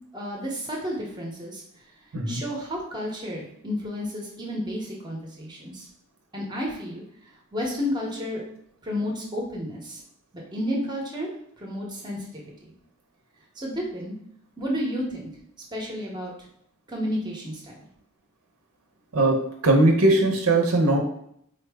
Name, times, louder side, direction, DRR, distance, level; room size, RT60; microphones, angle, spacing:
voice 1, 0.1-1.6 2.3-5.9 6.3-7.0 7.5-8.4 8.8-10.0 10.3-11.3 11.6-12.7 13.6-14.1 14.6-15.3 15.7-16.3 16.9-17.7, equal, 20° right, -2 dB, 0.7 m, -31 dB
voice 2, 19.6-21.0, right 2 dB, 80° right, 1 dB, 0.7 m, -19 dB
4.0 x 2.0 x 3.4 m, 0.69 s
head